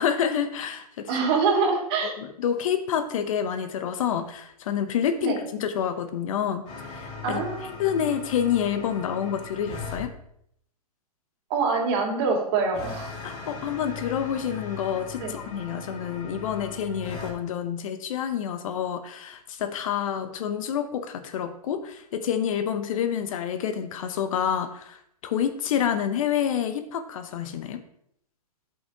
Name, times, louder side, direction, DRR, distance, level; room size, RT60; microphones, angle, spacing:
voice 1, 0.0-1.1 2.2-7.4 7.8-10.1 13.2-27.8, left 8 dB, 60° left, 9 dB, 0.8 m, -28 dB
voice 2, 1.1-2.1 5.2-5.4 7.2-7.7 11.5-13.1 15.2-15.4, right 4 dB, 45° right, 0 dB, 2.4 m, -25 dB
sound 1, 6.7-10.1 12.7-17.3, left 5 dB, 35° left, 2.5 m, -39 dB
10.5 x 5.6 x 2.8 m, 0.71 s
hypercardioid pair, 120°, 20 cm